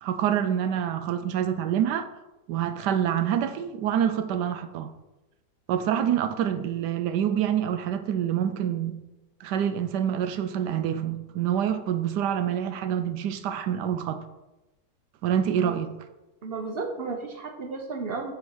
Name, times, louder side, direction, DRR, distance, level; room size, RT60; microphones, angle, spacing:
voice 1, 0.0-2.1 2.5-4.9 5.7-9.0 9.4-14.2 15.2-15.9, right 9 dB, 75° right, 1.2 m, -26 dB
voice 2, 16.4-18.3, right 4 dB, 45° right, 0.9 m, -33 dB
8.2 x 3.8 x 6.3 m
omnidirectional pair, 1.8 m